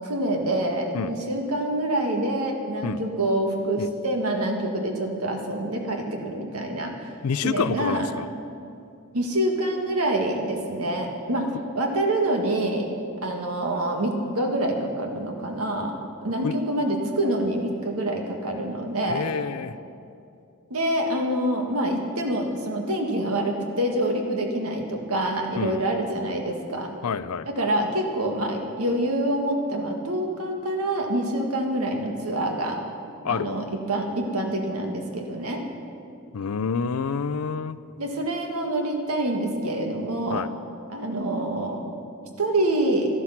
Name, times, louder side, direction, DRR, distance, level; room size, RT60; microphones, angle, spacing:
voice 1, 0.0-7.1 7.4-8.1 9.1-11.5 11.8-12.9 13.2-15.9 16.2-19.3 20.7-26.9 27.6-32.8 33.3-35.6 38.0-40.4 40.9-41.8 42.4-43.1, right 1 dB, 80° right, 2 dB, 1.7 m, -26 dB
voice 2, 7.2-8.3 16.4-16.6 19.0-19.8 25.6-25.8 27.0-27.5 33.2-33.5 36.3-37.8 40.3-40.5, left 6 dB, 85° left, 15 dB, 0.5 m, -28 dB
12.5 x 12.0 x 5.9 m, 2.5 s
head